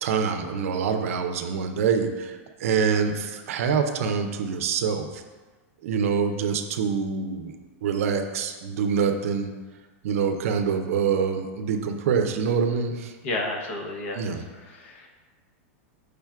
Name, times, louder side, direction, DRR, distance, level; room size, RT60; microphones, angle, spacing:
voice 1, 0.0-5.2 5.8-7.5 7.8-9.5 10.0-13.1 14.1-14.4, right 6 dB, 75° right, 6 dB, 0.5 m, -25 dB
voice 2, 13.2-15.1, left 2 dB, 60° left, 1 dB, 0.8 m, -32 dB
4.9 x 2.3 x 4.5 m, 1.3 s
supercardioid pair, 140°, 8 cm